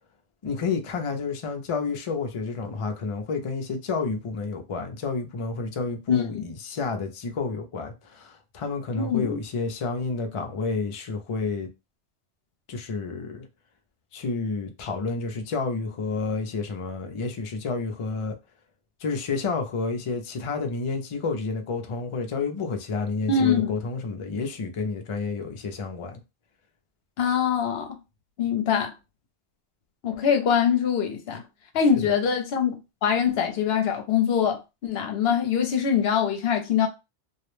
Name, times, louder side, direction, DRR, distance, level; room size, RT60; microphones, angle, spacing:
voice 1, 0.4-11.7 12.7-13.5 14.1-18.4 19.0-26.2 32.0-32.1, left 4 dB, 55° left, 0.3 m, -30 dB
voice 2, 8.9-9.4 23.3-23.7 27.2-27.9 28.4-28.9 30.0-31.4 31.7-32.7 33.0-36.9, left 7 dB, 70° left, 0.8 m, -23 dB
2.3 x 2.0 x 3.0 m
omnidirectional pair, 1.1 m